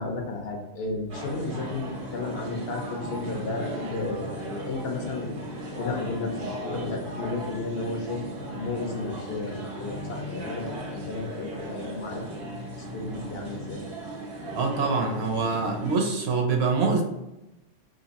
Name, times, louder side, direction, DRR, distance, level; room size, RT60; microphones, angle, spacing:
voice 1, 0.0-5.4 5.8-8.2 8.5-12.5 12.9-13.9, left 3 dB, 60° left, 1 dB, 0.8 m, -33 dB
sound 1, 1.1-16.0, right 1 dB, 85° right, 1.2 m, -37 dB
voice 2, 14.5-17.0, right 4 dB, 65° right, 1 dB, 0.8 m, -25 dB
2.9 x 2.5 x 4.0 m, 0.96 s
omnidirectional pair, 1.2 m